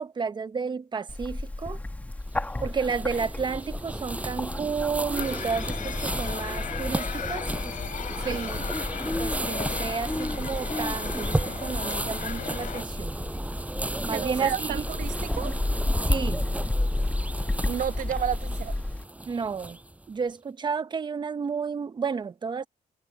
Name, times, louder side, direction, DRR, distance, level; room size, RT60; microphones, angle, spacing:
voice 1, 0.0-1.8 2.6-7.5 8.2-8.6 9.2-13.2 14.1-14.8 16.1-16.5 19.3-19.8 20.1-22.6, right 5 dB, 30° right, 0.9 m, -31 dB
Bird, 1.1-19.0, left 1 dB, 10° left, 1.6 m, -32 dB
sound 1, 2.3-20.1, right 1 dB, 10° right, 5.9 m, -34 dB
sound 2, 5.2-12.8, left 9 dB, 60° left, 5.8 m, -37 dB
voice 2, 14.1-15.6 17.7-18.8, right 9 dB, 65° right, 1.2 m, -32 dB
cardioid pair, 115°, 15 cm